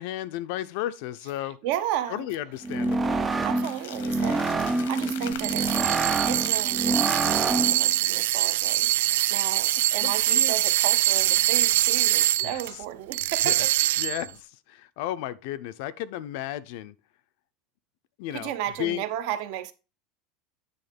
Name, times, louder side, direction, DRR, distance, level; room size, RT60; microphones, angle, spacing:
voice 1, 0.0-1.6 2.1-3.2 10.0-10.5 12.4-12.6 13.4-13.5 14.0-16.9 18.2-18.5 18.8-19.0, left 13 dB, 50° left, 0.5 m, -33 dB
voice 2, 1.4-2.3 3.4-5.9 6.3-14.1 18.3-19.7, right 11 dB, 50° right, 0.8 m, -34 dB
sound 1, 2.5-7.5, left 9 dB, 85° left, 1.1 m, -43 dB
sound 2, 2.6-7.9, right 3 dB, 10° right, 0.4 m, -27 dB
sound 3, 5.3-12.7 13.1-14.3, right 15 dB, 75° right, 0.4 m, -24 dB
9.3 x 3.6 x 5.1 m
supercardioid pair, 180°, 0 cm